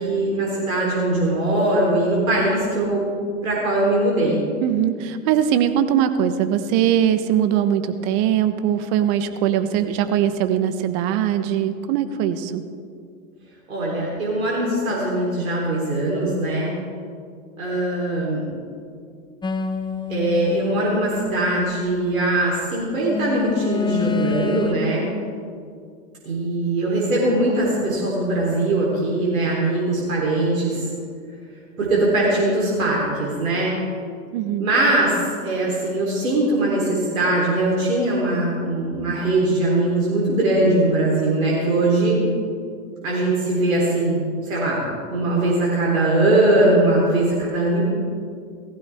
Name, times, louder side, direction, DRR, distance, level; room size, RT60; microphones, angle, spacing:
voice 1, 0.0-3.0 3.4-4.4 13.7-16.7 17.6-18.5 20.1-25.1 26.3-30.9 31.8-33.8 34.6-42.2 43.0-47.8, right 2 dB, 90° right, -5 dB, 3.8 m, -21 dB
voice 2, 4.6-12.6 34.3-34.7, right 10 dB, 55° right, 10 dB, 1.2 m, -21 dB
sound 1, 19.4-22.4 23.1-24.7, left 6 dB, 10° left, 0.8 m, -28 dB
18.0 x 15.5 x 3.6 m, 2.2 s
hypercardioid pair, 100°, 40 cm